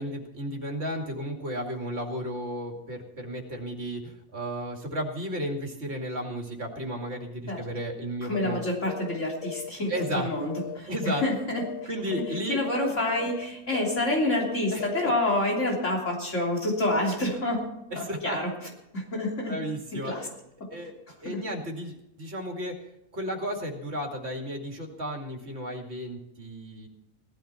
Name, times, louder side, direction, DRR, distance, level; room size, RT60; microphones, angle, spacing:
voice 1, 0.0-8.6 9.9-10.3 10.9-11.2 11.9-12.6 14.7-14.9 17.9-18.4 19.5-20.3 20.7-20.9 21.2-22.7 23.1-26.9, equal, 50° right, 1 dB, 2.8 m, -33 dB
voice 2, 8.2-10.9 11.2-11.6 12.5-17.6 18.0-18.5 18.9-19.5 19.9-20.3 21.2-21.4, left 1 dB, 60° left, -2 dB, 3.7 m, -28 dB
sound 1, 8.3-8.6 8.9-9.2 9.4-10.8 11.0-11.3 11.6-11.9 12.1-12.4 12.6-12.9 13.2-13.5 13.7-14.0 14.3-14.5 14.8-15.1, left 7 dB, 75° left, 1.2 m, -37 dB
18.0 x 13.0 x 4.4 m, 0.86 s
omnidirectional pair, 1.4 m